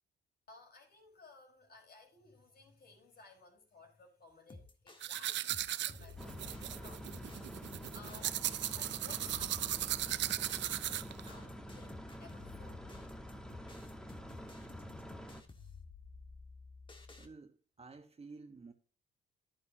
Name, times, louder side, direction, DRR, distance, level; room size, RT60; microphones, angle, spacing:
voice 1, 0.5-7.0 7.9-12.8 14.3-14.7, left 3 dB, 50° left, 4.7 m, -59 dB
sound 1, 4.5-17.3, left 3 dB, 25° left, 1.7 m, -53 dB
sound 2, 5.0-11.3, right 13 dB, 65° right, 0.5 m, -37 dB
sound 3, 6.2-15.4, equal, 5° left, 1.4 m, -48 dB
voice 2, 17.2-18.7, right 4 dB, 30° right, 1.3 m, -52 dB
11.0 x 10.0 x 2.9 m
cardioid pair, 90°, 20 cm